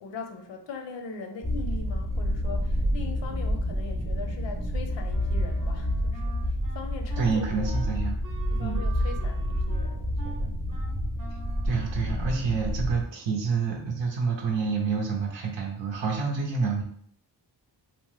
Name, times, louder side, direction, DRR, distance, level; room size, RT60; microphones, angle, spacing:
voice 1, 0.0-7.8 8.5-10.5, left 4 dB, 85° left, 5 dB, 0.6 m, -41 dB
sound 1, 1.4-13.0, equal, 10° right, 0.5 m, -29 dB
Wind instrument woodwind instrument, 5.1-12.7, right 3 dB, 50° right, 0.7 m, -47 dB
voice 2, 7.2-8.2 8.6-8.8 11.6-16.8, right 5 dB, 85° right, -1 dB, 0.7 m, -28 dB
2.9 x 2.0 x 3.1 m, 0.63 s
wide cardioid pair, 110°, 43 cm